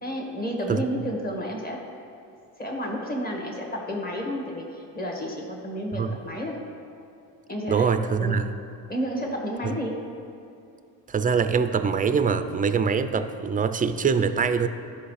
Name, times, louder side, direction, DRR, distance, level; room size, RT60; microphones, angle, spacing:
voice 1, 0.0-1.9 2.6-6.6 7.5-7.9 8.2-8.4 8.9-10.0, equal, 20° left, 0 dB, 1.7 m, -31 dB
voice 2, 7.7-8.5 9.6-9.7 11.1-14.7, right 6 dB, 20° right, 10 dB, 0.4 m, -23 dB
13.5 x 5.5 x 3.3 m, 2.5 s
cardioid pair, 85°, 41 cm